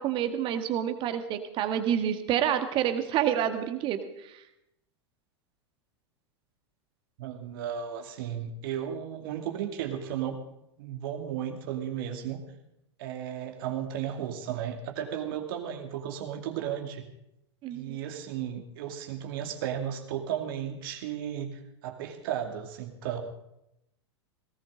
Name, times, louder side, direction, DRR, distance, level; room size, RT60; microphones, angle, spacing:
voice 1, 0.0-4.4 17.6-17.8, right 10 dB, 35° right, 8 dB, 1.7 m, -28 dB
voice 2, 7.2-10.4 10.8-12.4 13.0-17.1 17.7-23.2, right 9 dB, 50° right, 4 dB, 2.3 m, -34 dB
18.5 x 18.0 x 3.9 m, 0.83 s
figure-of-eight pair, 90°, 15 cm